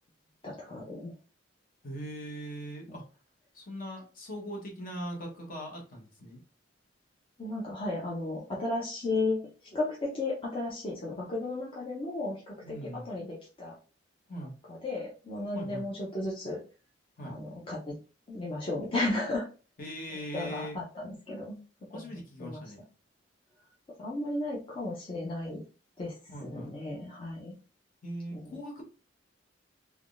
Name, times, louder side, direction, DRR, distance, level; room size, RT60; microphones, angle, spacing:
voice 1, 0.4-1.1 7.4-13.8 14.7-16.6 17.2-18.0 18.3-19.5 20.3-21.6 21.9-22.0 22.4-22.6 24.0-25.6 26.0-27.5 28.3-28.5, left 2 dB, 30° left, -5 dB, 0.6 m, -34 dB
voice 2, 1.8-3.1 3.5-6.4 12.6-13.1 14.3-14.5 15.5-15.9 17.2-17.4 19.8-20.8 21.9-22.8 26.3-26.7 28.0-28.8, equal, 45° left, 1 dB, 1.0 m, -40 dB
3.4 x 2.2 x 2.4 m, 0.35 s
head